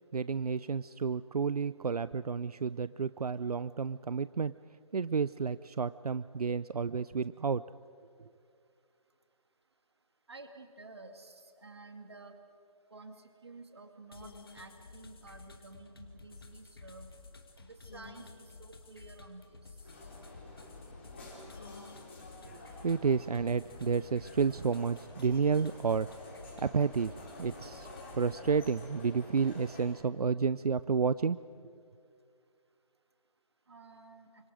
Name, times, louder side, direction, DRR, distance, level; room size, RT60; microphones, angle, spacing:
voice 1, 0.1-4.6 4.9-7.6 22.5-26.3 26.6-27.1 27.4-31.4, right 5 dB, 80° right, 16 dB, 0.6 m, -31 dB
voice 2, 10.3-12.3 12.9-17.1 17.6-18.2 18.6-19.6 33.7-34.3, right 3 dB, 45° right, 6 dB, 2.3 m, -51 dB
sound 1, 14.1-28.9, left 3 dB, 40° left, 2.0 m, -52 dB
sound 2, 19.8-29.9, left 2 dB, 20° left, 4.2 m, -50 dB
29.5 x 26.0 x 4.9 m, 2.4 s
hypercardioid pair, 180°, 19 cm